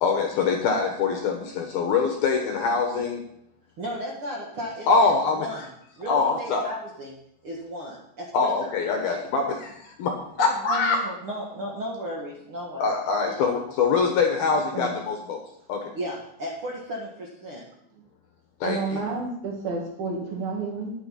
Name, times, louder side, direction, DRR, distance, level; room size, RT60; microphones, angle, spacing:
voice 1, 0.0-3.2 4.9-5.5 6.1-6.6 8.3-11.0 12.8-15.4 15.7-15.9 18.6-19.0, left 4 dB, 70° left, 3 dB, 2.4 m, -24 dB
voice 2, 3.8-5.7 6.0-7.1 7.4-8.5 10.4-12.9 13.2-13.4 15.9-17.6, equal, 80° right, -3 dB, 1.2 m, -34 dB
voice 3, 18.6-20.9, right 4 dB, 55° right, 0 dB, 3.6 m, -30 dB
10.5 x 9.0 x 5.7 m, 0.73 s
omnidirectional pair, 5.5 m